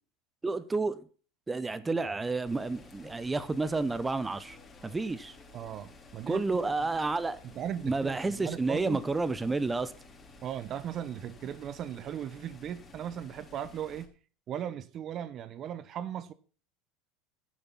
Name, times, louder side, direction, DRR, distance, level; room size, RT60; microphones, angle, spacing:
voice 1, 0.4-1.0 1.5-4.6 4.8-5.4 6.3-7.4 7.8-9.9, right 3 dB, 15° right, 0.8 m, -30 dB
sound 1, 2.4-14.1, left 3 dB, 25° left, 3.0 m, -53 dB
voice 2, 5.5-6.6 7.4-9.0 10.4-14.1 14.5-16.3, right 10 dB, 45° right, 0.9 m, -37 dB
15.0 x 7.0 x 5.7 m
hypercardioid pair, 90°, 0 cm